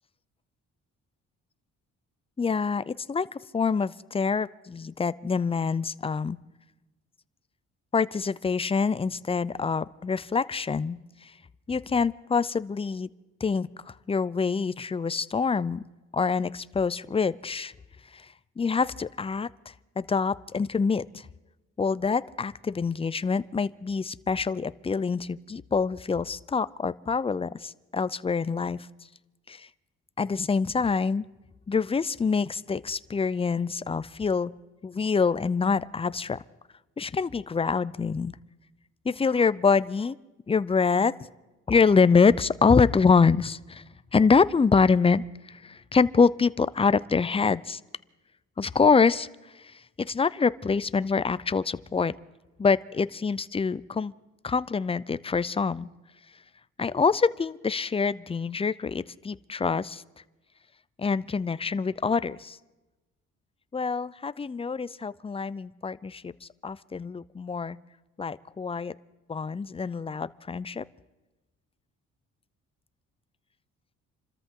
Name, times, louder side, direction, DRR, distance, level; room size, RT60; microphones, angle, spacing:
voice 1, 2.4-3.3 3.5-6.4 7.9-11.0 11.2-11.3 11.7-13.1 13.4-15.8 16.1-17.7 18.1-18.2 18.6-19.5 20.0-21.3 21.8-28.8 29.5-29.7 30.2-31.2 31.7-34.5 34.8-36.4 37.0-38.3 39.0-40.2 40.5-41.1 41.7-43.8 44.1-47.8 48.6-49.3 50.0-52.1 52.6-54.1 54.4-55.9 56.8-60.0 61.0-62.6 63.7-67.8 68.2-68.9 69.3-70.8, left 5 dB, 20° left, 17 dB, 0.5 m, -25 dB
28.0 x 13.5 x 3.8 m, 1.1 s
cardioid pair, 90°, 30 cm